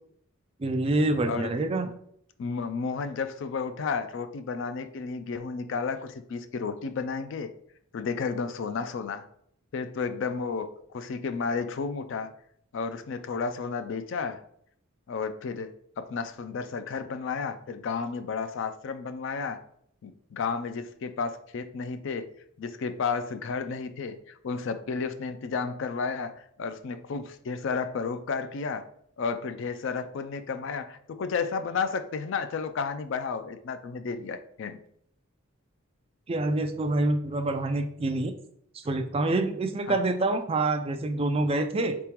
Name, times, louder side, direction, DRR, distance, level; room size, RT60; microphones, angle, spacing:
voice 1, 0.6-1.9 36.3-38.3 38.7-42.0, right 2 dB, 25° right, 7 dB, 0.3 m, -26 dB
voice 2, 2.4-7.5 7.9-9.3 9.7-12.3 12.7-14.4 15.1-15.7 16.0-19.6 20.0-22.3 22.6-28.9 29.2-34.8 39.9-40.0, left 5 dB, 60° left, 10 dB, 0.3 m, -32 dB
3.8 x 3.6 x 2.9 m, 0.66 s
head